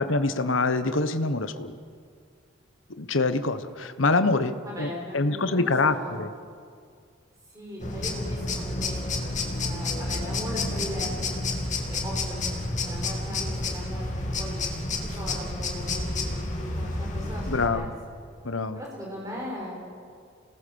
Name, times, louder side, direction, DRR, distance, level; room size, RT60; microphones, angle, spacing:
voice 1, 0.0-1.7 3.0-6.3 17.5-17.9 18.4-18.8, left 3 dB, 75° left, 11 dB, 1.1 m, -25 dB
voice 2, 4.6-6.1 7.5-9.0 9.6-12.4 12.8-14.1 14.4-14.6 15.1-17.9 18.7-19.8, equal, 15° right, -3 dB, 6.3 m, -38 dB
sound 1, 7.8-17.7, left 2 dB, 35° left, 2.7 m, -30 dB
29.0 x 19.0 x 7.0 m, 2.2 s
head